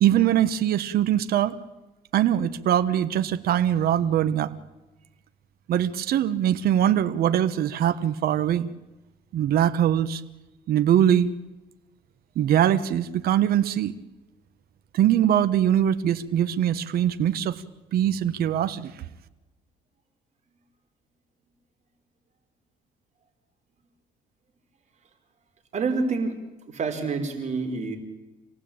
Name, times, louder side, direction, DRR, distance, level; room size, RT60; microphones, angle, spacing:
voice 1, 0.0-1.6 2.1-4.5 5.7-8.7 9.3-10.2 10.7-11.3 12.3-13.9 14.9-17.6 17.9-18.9, right 10 dB, 65° right, 11 dB, 1.3 m, -22 dB
voice 2, 25.7-26.3 26.7-28.0, right 4 dB, 45° right, 5 dB, 4.7 m, -27 dB
27.0 x 18.0 x 8.8 m, 1.1 s
cardioid pair, 110°, 17 cm